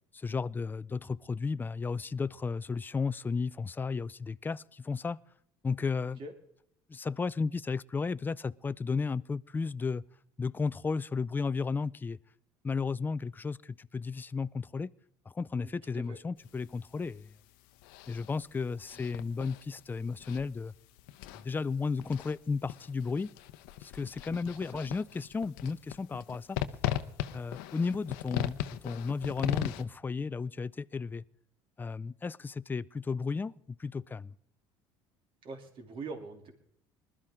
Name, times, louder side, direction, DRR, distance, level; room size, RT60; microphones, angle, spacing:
voice 1, 0.1-5.2 5.6-6.2 6.9-10.0 10.4-12.2 12.6-14.9 15.3-17.3 18.1-20.7 21.3-23.3 23.8-26.6 27.3-31.2 31.8-34.3, left 4 dB, 15° left, 0.4 m, -34 dB
voice 2, 15.6-16.2 18.9-19.0 24.3-24.4 24.7-24.8 35.4-36.5, right 3 dB, 55° right, 3.1 m, -43 dB
sound 1, 16.4-29.8, left 13 dB, 80° left, 0.8 m, -39 dB
20.5 x 12.5 x 3.7 m
supercardioid pair, 85°, 11 cm